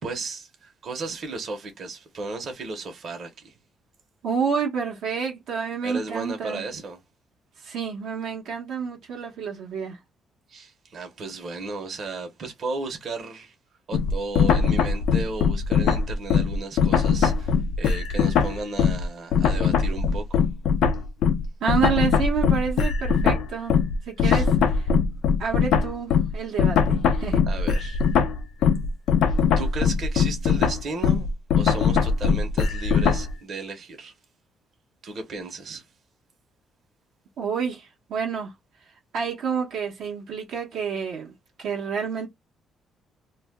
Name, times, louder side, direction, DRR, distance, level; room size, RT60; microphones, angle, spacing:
voice 1, 0.0-3.5 5.8-7.0 10.5-13.5 13.9-20.5 24.2-24.5 27.5-28.0 29.3-31.3 31.6-34.1 35.0-35.8, right 3 dB, 55° right, 1.0 m, -35 dB
voice 2, 4.2-6.7 7.6-10.0 21.6-23.8 24.1-24.9 25.4-27.4 37.4-38.5 39.1-42.3, right 6 dB, 80° right, 1.0 m, -29 dB
sound 1, 13.9-19.1 19.3-33.3, left 6 dB, 80° left, 0.5 m, -21 dB
2.5 x 2.2 x 3.5 m
cardioid pair, 90°, 0 cm